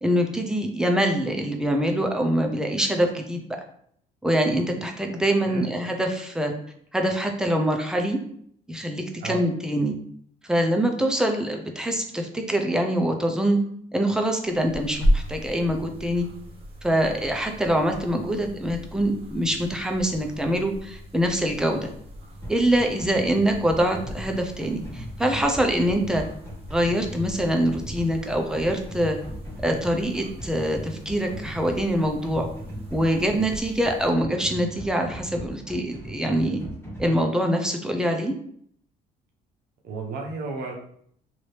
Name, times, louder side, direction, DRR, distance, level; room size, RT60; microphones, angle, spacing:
voice 1, 0.0-3.6 4.2-6.5 6.9-8.2 8.7-10.0 10.5-13.6 13.9-16.3 16.8-21.9 22.5-26.3 26.7-29.2 29.6-32.5 32.9-36.6 37.0-38.3, equal, 5° right, 3 dB, 0.5 m, -24 dB
sound 1, 14.4-34.1, equal, 35° right, 0.9 m, -35 dB
sound 2, 22.4-37.2, right 1 dB, 15° left, 1.5 m, -39 dB
voice 2, 39.8-40.7, right 4 dB, 70° right, 0 dB, 0.8 m, -33 dB
3.0 x 2.7 x 3.2 m, 0.64 s
cardioid pair, 110°, 17 cm